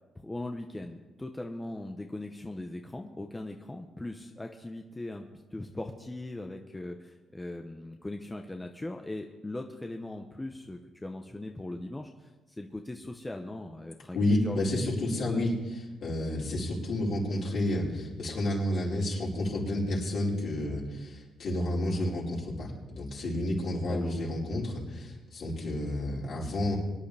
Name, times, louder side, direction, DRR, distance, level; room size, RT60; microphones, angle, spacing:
voice 1, 0.2-5.3 5.5-12.3 12.6-14.8 15.2-15.5 23.8-24.1, left 2 dB, 15° left, 3 dB, 0.9 m, -39 dB
voice 2, 14.1-15.5 16.0-26.8, left 1 dB, 60° left, -5 dB, 4.9 m, -30 dB
23.0 x 10.5 x 3.5 m, 1.2 s
cardioid pair, 90°, 0 cm